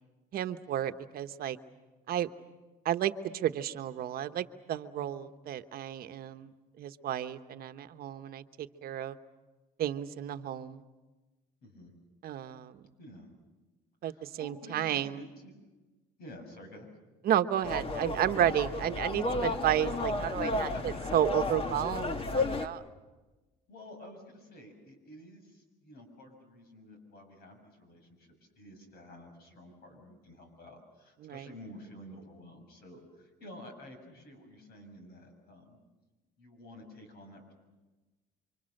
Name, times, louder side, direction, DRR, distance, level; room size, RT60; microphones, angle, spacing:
voice 1, 0.3-1.6 2.1-2.3 2.8-8.4 8.8-9.2 9.8-10.8 12.2-12.8 14.0-15.2 17.2-20.7 21.1-22.8 31.2-31.5, right 11 dB, 65° right, 9 dB, 1.1 m, -32 dB
voice 2, 11.6-11.9 13.0-13.3 14.1-15.5 16.2-16.9 19.4-19.7 20.5-20.8 23.7-28.3 28.6-35.8 36.4-37.5, left 1 dB, 65° left, 5 dB, 7.0 m, -50 dB
sound 1, 17.6-22.7, left 2 dB, 35° left, 1.5 m, -33 dB
29.5 x 24.5 x 6.6 m, 1.2 s
cardioid pair, 110°, 17 cm